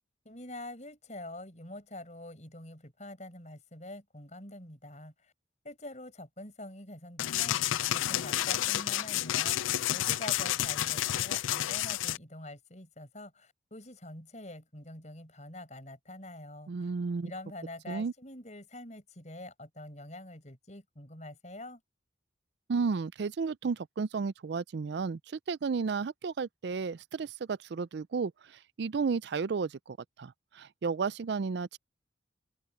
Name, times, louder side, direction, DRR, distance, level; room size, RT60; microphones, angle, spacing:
voice 1, 0.2-5.3 5.6-16.9 17.2-21.8, left 1 dB, 35° left, 6.7 m, -45 dB
sound 1, 7.2-12.2, left 13 dB, 90° left, 0.4 m, -30 dB
voice 2, 16.7-17.3 17.9-18.1 22.7-31.8, right 5 dB, 60° right, 0.4 m, -33 dB
head